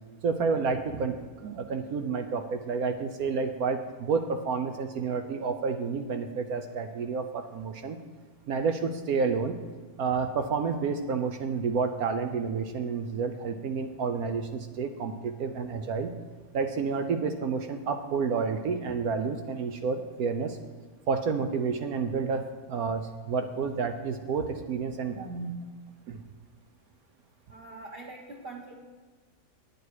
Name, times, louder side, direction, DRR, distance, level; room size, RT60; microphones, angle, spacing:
voice 1, 0.2-8.0 8.5-9.6 10.0-16.1 16.5-20.6 21.1-22.4 22.7-25.5 26.1-26.2, right 5 dB, 70° right, 6 dB, 1.2 m, -30 dB
voice 2, 27.5-28.7, right 2 dB, 40° right, -1 dB, 1.1 m, -43 dB
9.7 x 9.4 x 4.7 m, 1.5 s
omnidirectional pair, 1.7 m